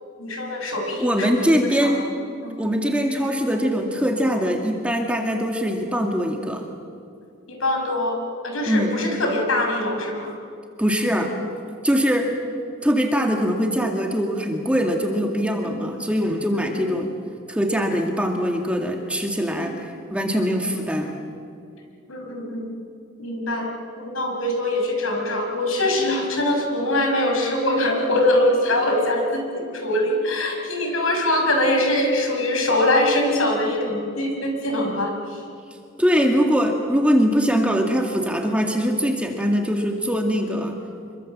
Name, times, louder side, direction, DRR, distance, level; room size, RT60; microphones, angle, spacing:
voice 1, 0.2-2.1 2.4-2.5 7.5-8.2 8.4-10.3 12.1-12.2 15.6-16.1 16.5-16.9 22.1-22.7 23.2-23.7 24.0-35.4, left 1 dB, 90° left, 3 dB, 5.5 m, -23 dB
voice 2, 1.0-2.0 2.6-6.7 8.7-8.9 10.8-11.3 11.8-12.3 12.8-17.1 17.5-21.1 36.0-40.8, equal, 5° right, 2 dB, 2.1 m, -22 dB
26.5 x 24.0 x 7.5 m, 2.4 s
head